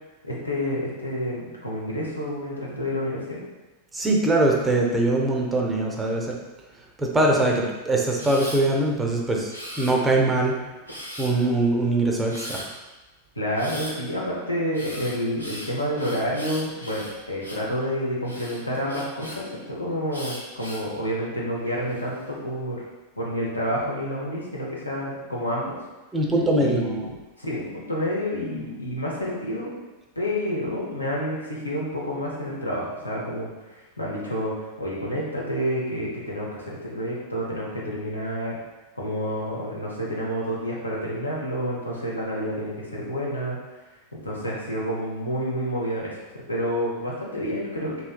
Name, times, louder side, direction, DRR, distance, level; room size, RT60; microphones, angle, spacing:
voice 1, 0.2-3.4 13.4-22.8 23.2-25.8 26.6-27.0 27.4-29.7 30.2-34.5 34.8-38.6 38.9-43.6 44.1-46.2 46.5-48.0, equal, 80° left, -4 dB, 0.6 m, -29 dB
voice 2, 3.9-6.4 7.0-9.5 9.8-10.6 11.2-12.6 26.1-26.8, right 2 dB, 10° right, -1 dB, 0.4 m, -22 dB
Camera, 8.2-8.6 9.5-10.3 10.9-11.5 12.3-12.7 13.5-13.9 14.7-17.7 18.2-19.4 20.1-20.9 21.5-22.0, equal, 90° right, 0.5 m, -38 dB
3.1 x 2.7 x 2.2 m, 1.1 s
figure-of-eight pair, 90°, 0 cm